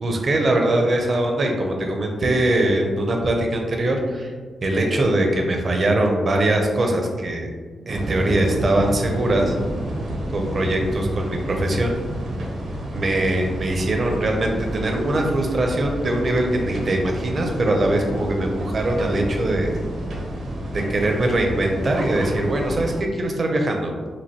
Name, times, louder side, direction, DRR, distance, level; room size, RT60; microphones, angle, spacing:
voice 1, 0.0-4.3 4.6-7.5 7.9-9.5 10.3-11.9 12.9-19.7 20.7-23.9, right 1 dB, 35° right, 2 dB, 0.6 m, -22 dB
sound 1, 7.9-23.0, right 1 dB, 65° right, 0.9 m, -30 dB
6.0 x 2.5 x 2.9 m, 1.5 s
wide cardioid pair, 165°, 0 cm